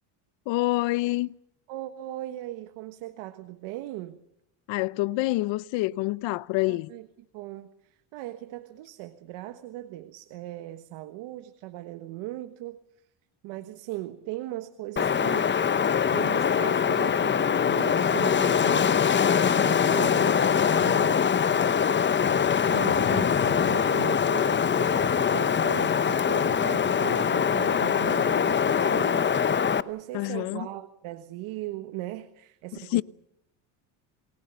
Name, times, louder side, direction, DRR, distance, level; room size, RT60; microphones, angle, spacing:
voice 1, 0.5-1.3 4.7-6.9 30.1-30.7 32.9-33.0, left 19 dB, 70° left, 0.8 m, -27 dB
voice 2, 1.7-4.2 6.7-7.1 7.3-12.8 13.4-19.0 19.5-21.3 22.4-29.3 29.8-33.0, right 16 dB, 75° right, 1.5 m, -38 dB
Wind, 15.0-29.8, left 7 dB, 25° left, 0.8 m, -23 dB
28.5 x 19.5 x 7.0 m
cardioid pair, 110°, 48 cm